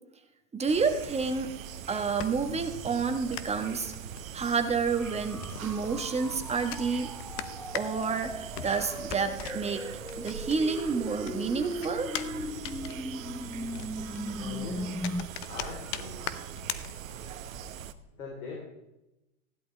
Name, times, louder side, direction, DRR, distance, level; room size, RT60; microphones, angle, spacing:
voice 1, 0.5-1.5 1.9-3.9 4.3-7.1 7.7-9.8 10.2-12.1, right 5 dB, 15° right, 6 dB, 1.4 m, -29 dB
sound 1, 0.7-17.9, right 9 dB, 80° right, 1.0 m, -41 dB
sound 2, 1.8-10.9 11.2-17.5, left 12 dB, 45° left, 0.9 m, -42 dB
sound 3, 4.9-15.3, left 1 dB, ahead, 0.5 m, -39 dB
voice 2, 14.4-15.0 15.5-16.5 18.1-18.6, left 3 dB, 85° left, -2 dB, 3.9 m, -42 dB
16.0 x 11.0 x 3.4 m, 0.92 s
hypercardioid pair, 110°, 39 cm